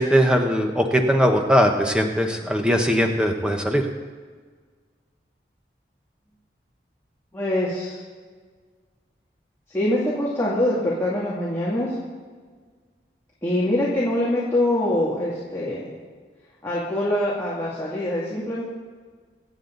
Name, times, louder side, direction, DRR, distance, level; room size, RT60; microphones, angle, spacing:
voice 1, 0.0-3.8, equal, 5° right, 3 dB, 1.2 m, -20 dB
voice 2, 7.3-8.0 9.7-12.0 13.4-15.9 16.6-18.6, left 1 dB, 15° left, -8 dB, 2.5 m, -24 dB
25.0 x 8.7 x 4.0 m, 1.5 s
head